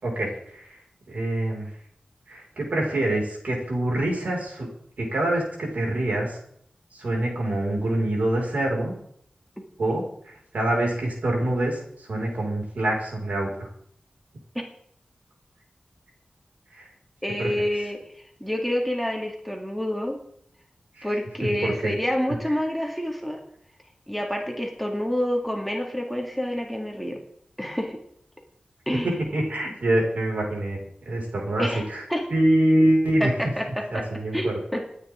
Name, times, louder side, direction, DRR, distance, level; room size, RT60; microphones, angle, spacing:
voice 1, 0.0-0.8 1.1-1.7 2.3-4.7 5.0-6.4 6.9-8.9 9.8-13.7 16.7-16.9 17.4-17.5 21.0-21.1 21.6-21.9 28.9-30.8 31.1-32.0 32.3-33.3 33.9-34.6, right 1 dB, 75° right, -1 dB, 5.9 m, -25 dB
voice 2, 17.2-20.2 21.0-23.4 24.1-27.2 27.6-28.0 28.9-29.1 31.6-31.8 32.1-32.2 33.2-33.3 33.6-34.0 34.3-34.8, equal, ahead, 1 dB, 2.6 m, -28 dB
28.5 x 9.9 x 3.9 m, 0.68 s
wide cardioid pair, 90°, 3 cm